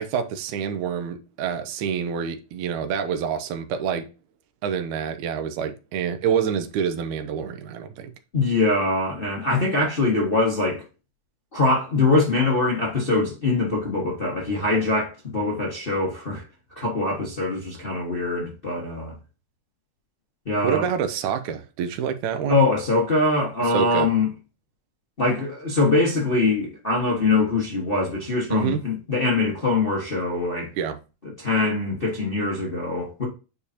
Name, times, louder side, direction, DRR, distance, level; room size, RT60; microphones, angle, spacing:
voice 1, 0.0-4.1 4.6-8.1 20.6-22.6 23.7-24.1 28.5-28.8 30.8-31.0, right 7 dB, 80° right, 2.2 m, -27 dB
voice 2, 8.3-10.8 11.5-16.4 16.7-19.1 20.4-20.9 22.5-24.3 25.2-30.7 31.4-33.2, left 3 dB, 55° left, 0.6 m, -23 dB
8.4 x 4.7 x 2.8 m
omnidirectional pair, 3.5 m